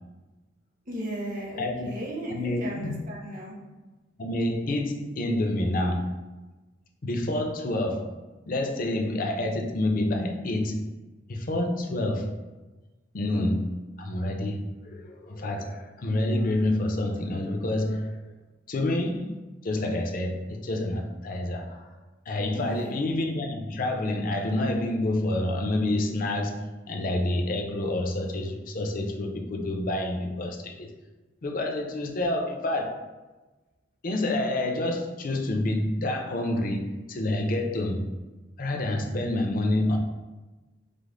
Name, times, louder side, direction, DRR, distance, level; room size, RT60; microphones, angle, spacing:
voice 1, 0.9-3.6 22.5-23.0, right 1 dB, 50° right, -2 dB, 1.0 m, -35 dB
voice 2, 1.6-1.9 2.3-3.1 4.2-6.2 7.0-8.1 8.5-10.8 11.3-12.3 13.1-18.2 18.7-19.4 19.6-21.9 22.3-30.9 31.4-33.0 34.0-38.1 38.6-40.0, left 1 dB, 50° left, 3 dB, 0.5 m, -28 dB
5.1 x 2.0 x 3.8 m, 1.2 s
head